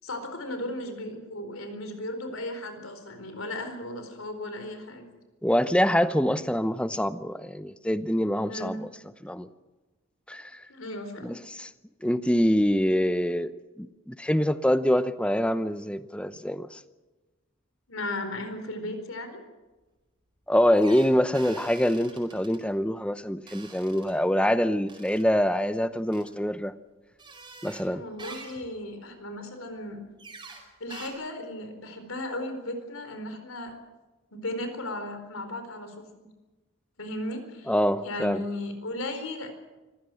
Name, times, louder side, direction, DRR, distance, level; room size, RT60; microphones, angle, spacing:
voice 1, 0.0-5.0 8.4-8.8 10.7-11.4 17.9-19.4 27.9-30.0 30.8-33.7 34.3-36.3 37.0-37.7 38.0-39.5, left 1 dB, 90° left, 4.4 m, -36 dB
voice 2, 5.4-8.7 9.2-9.5 10.3-10.6 11.2-11.7 12.0-13.5 13.8-16.8 20.5-26.7 27.6-28.0 37.7-38.4, equal, 5° left, 0.7 m, -25 dB
sound 1, 20.7-22.6 23.5-24.1 24.9-25.2 26.1-26.3 27.2-27.9 28.2-28.7 30.2-30.6 30.9-31.1, right 3 dB, 20° right, 4.8 m, -46 dB
25.0 x 16.0 x 7.8 m
head